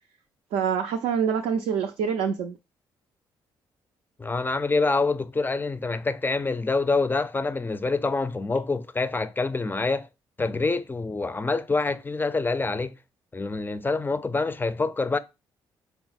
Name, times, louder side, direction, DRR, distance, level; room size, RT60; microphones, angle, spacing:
voice 1, 0.5-2.6, right 7 dB, 75° right, 0.4 m, -26 dB
voice 2, 4.2-10.1 10.4-13.0 13.3-15.2, left 3 dB, 20° left, 0.4 m, -26 dB
3.9 x 2.0 x 3.9 m
hypercardioid pair, 45°, 11 cm